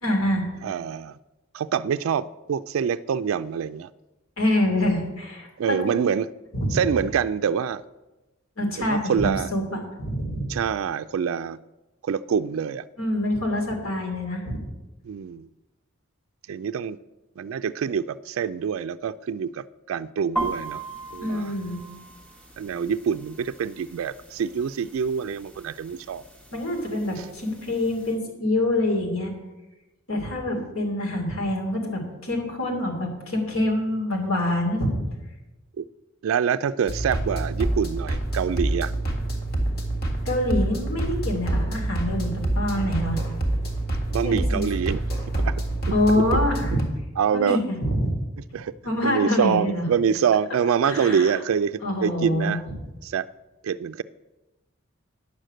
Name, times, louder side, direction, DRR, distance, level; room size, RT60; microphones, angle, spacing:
voice 1, 0.0-0.4 4.4-6.0 6.5-6.8 8.6-10.5 13.0-14.6 21.2-21.8 26.5-29.3 30.1-35.0 40.2-43.2 44.2-44.7 45.9-46.8 47.3-48.2 48.8-49.8 50.8-51.4 51.8-52.5, left 1 dB, 85° left, 2 dB, 2.7 m, -26 dB
voice 2, 0.6-1.1 1.5-3.9 5.6-6.3 6.7-7.8 8.8-9.5 10.5-11.6 12.0-12.8 15.1-15.5 16.5-17.0 17.4-20.8 21.1-21.5 22.6-26.2 30.6-30.8 35.8-35.9 36.2-38.9 44.1-45.0 45.4-45.5 46.1-46.2 46.7-46.8 47.2-47.6 48.5-48.7 49.0-52.6 53.0-53.3 53.6-54.0, right 7 dB, 75° right, 12 dB, 0.3 m, -25 dB
sound 1, 20.4-28.2, right 2 dB, 5° left, 0.9 m, -38 dB
sound 2, 36.9-46.8, right 1 dB, 50° left, 1.8 m, -27 dB
9.7 x 6.5 x 7.6 m, 1.0 s
head